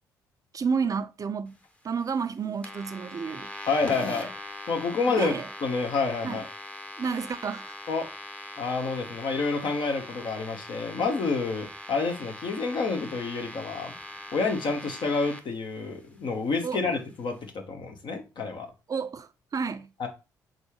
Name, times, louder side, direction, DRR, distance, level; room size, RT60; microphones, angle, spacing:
voice 1, 0.5-1.5 1.8-3.5 5.1-5.5 6.2-6.4 7.0-7.7 16.6-16.9 18.9-19.9, right 5 dB, 40° right, 0.4 m, -31 dB
sound 1, 2.6-15.4, left 1 dB, 10° left, 0.9 m, -41 dB
voice 2, 3.7-4.3 4.7-5.3 5.6-6.4 7.9-8.1 8.6-13.9 14.3-18.7 20.0-20.1, left 4 dB, 55° left, 1.1 m, -28 dB
4.0 x 3.7 x 3.0 m
hypercardioid pair, 50°, 9 cm